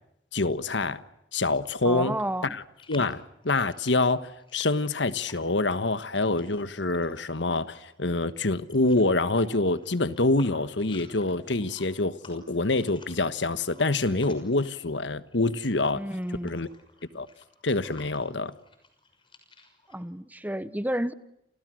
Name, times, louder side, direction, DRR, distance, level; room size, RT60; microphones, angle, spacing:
voice 1, 0.3-1.0 1.3-2.2 2.5-2.6 2.9-16.0 16.4-16.7 17.1-17.3 17.6-18.5, left 2 dB, 75° left, 1.4 m, -26 dB
voice 2, 1.8-2.5 15.9-16.6 19.9-21.1, right 1 dB, 10° right, 1.0 m, -31 dB
sound 1, 2.8-15.0 15.3-20.0, left 3 dB, 25° left, 6.2 m, -53 dB
30.0 x 29.0 x 6.4 m
head